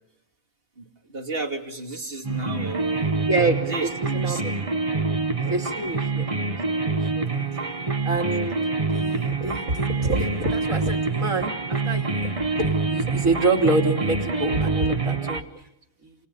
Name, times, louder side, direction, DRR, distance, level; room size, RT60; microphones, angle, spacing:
voice 1, 0.8-3.1 3.6-4.4 5.4-5.9 7.3-7.8, right 2 dB, 45° right, 2 dB, 2.9 m, -34 dB
sound 1, 2.2-15.4, right 4 dB, 25° right, 1.5 m, -26 dB
voice 2, 3.3-3.7 4.1-4.5 5.4-6.3 6.8-6.9 7.2-7.3 8.0-8.6 8.9-11.5 11.8-12.3 12.6-15.4 16.0-16.2, right 2 dB, 85° right, 2 dB, 3.2 m, -26 dB
29.0 x 28.5 x 5.5 m, 0.88 s
omnidirectional pair, 1.4 m